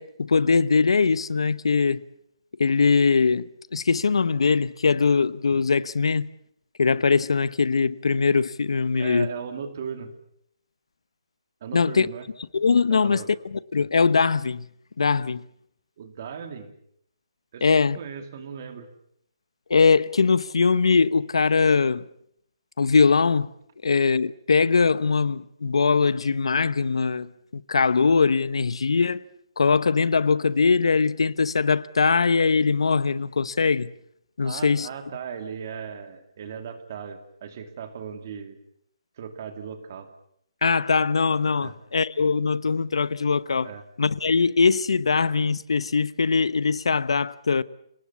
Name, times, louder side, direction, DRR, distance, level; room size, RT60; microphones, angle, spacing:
voice 1, 0.0-2.0 2.6-6.3 6.8-9.3 11.7-12.1 12.5-14.7 15.0-15.4 17.6-18.0 19.7-22.0 22.8-23.5 23.8-29.2 29.6-33.9 34.4-34.9 40.6-43.7 44.0-47.6, left 5 dB, 75° left, 1.0 m, -21 dB
voice 2, 9.0-10.1 11.6-12.3 12.9-13.3 16.0-16.7 17.5-18.9 34.4-38.6 39.2-40.1 41.6-41.7 43.6-43.8, right 7 dB, 30° right, 2.5 m, -37 dB
30.0 x 18.5 x 8.4 m
hypercardioid pair, 175°, 3 cm